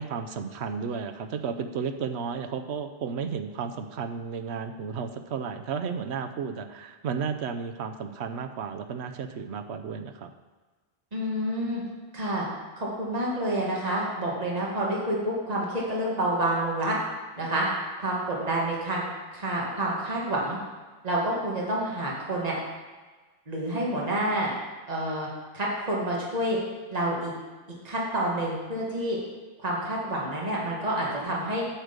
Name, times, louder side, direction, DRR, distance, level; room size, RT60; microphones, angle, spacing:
voice 1, 0.0-10.3, right 6 dB, 70° right, 7 dB, 1.0 m, -33 dB
voice 2, 11.1-11.8 12.1-12.5 12.8-17.0 17.4-17.7 18.0-19.0 19.3-20.6 21.0-22.6 23.5-24.5 24.9-25.3 25.5-26.6 26.9-27.3 27.8-29.2 29.6-31.6, right 1 dB, 35° right, -4 dB, 1.8 m, -28 dB
8.8 x 6.4 x 5.1 m, 1.3 s
omnidirectional pair, 1.2 m